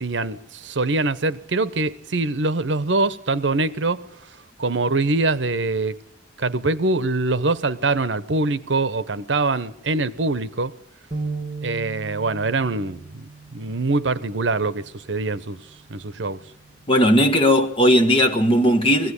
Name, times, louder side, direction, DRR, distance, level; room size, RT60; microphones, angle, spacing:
voice 1, 0.0-4.1 4.6-6.0 6.4-10.7 11.6-15.6 15.9-16.4, right 3 dB, 75° right, 0.9 m, -24 dB
sound 1, 11.1-17.4, right 4 dB, 35° right, 2.2 m, -37 dB
voice 2, 16.9-19.1, equal, 30° left, 1.7 m, -17 dB
22.0 x 16.5 x 9.8 m
head